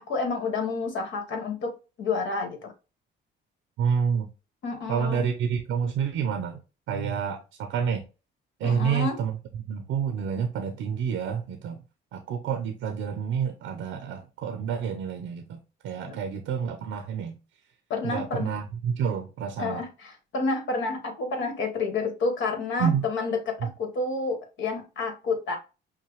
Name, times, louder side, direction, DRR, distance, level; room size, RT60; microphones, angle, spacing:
voice 1, 0.0-1.7 2.0-2.7 4.6-5.3 8.6-9.2 16.1-16.2 17.9-18.5 19.6-25.6, left 3 dB, 75° left, 1.6 m, -29 dB
voice 2, 3.8-4.3 4.9-6.6 6.9-8.0 8.6-11.8 12.1-17.4 18.0-19.8 22.8-23.0 23.6-23.7, right 7 dB, 85° right, 0.7 m, -29 dB
5.7 x 2.3 x 3.2 m
cardioid pair, 90°, 20 cm